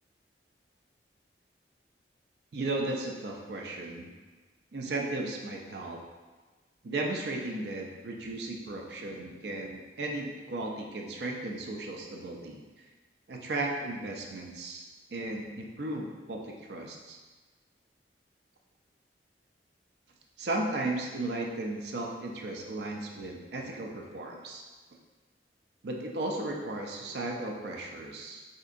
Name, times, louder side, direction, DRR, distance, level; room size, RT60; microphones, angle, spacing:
voice 1, 2.5-4.1 4.7-6.0 6.8-12.6 13.3-17.2 20.4-24.6 25.8-28.5, right 2 dB, 65° right, 1 dB, 0.5 m, -35 dB
4.2 x 2.7 x 2.5 m, 1.3 s
head